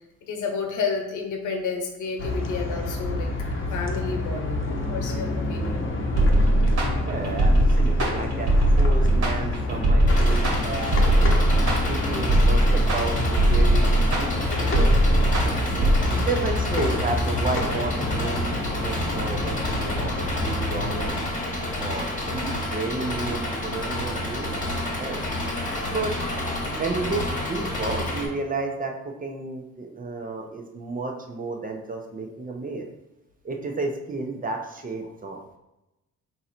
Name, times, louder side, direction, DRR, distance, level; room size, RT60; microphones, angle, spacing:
voice 1, 0.2-3.3 3.7-5.9 25.9-26.1, left 5 dB, 80° left, 3 dB, 1.0 m, -31 dB
sound 1, 2.2-21.1, left 2 dB, 45° left, 0.8 m, -28 dB
sound 2, 6.2-16.0, right 1 dB, 55° right, 1.4 m, -20 dB
voice 2, 7.0-11.4 11.9-13.8 14.1-14.4 14.7-14.9 15.7-21.2 21.8-24.5 25.0-25.2 25.9-26.4 26.6-32.9 33.4-35.6, right 3 dB, 30° right, 2 dB, 0.7 m, -32 dB
Engine, 10.1-28.3, left 1 dB, 25° left, 1.2 m, -30 dB
3.8 x 2.7 x 4.3 m, 0.94 s
cardioid pair, 90°, 30 cm